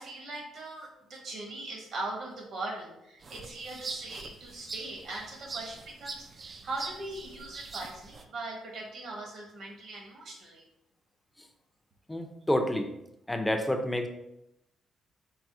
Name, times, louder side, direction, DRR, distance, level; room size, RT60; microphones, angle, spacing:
voice 1, 0.0-10.6, right 2 dB, 65° right, -1 dB, 1.4 m, -40 dB
sound 1, 3.2-8.2, right 4 dB, 40° right, 0.4 m, -43 dB
voice 2, 12.1-12.9 13.3-14.1, left 1 dB, 10° left, 5 dB, 0.6 m, -28 dB
4.8 x 4.0 x 2.7 m, 0.83 s
cardioid pair, 90°, 0 cm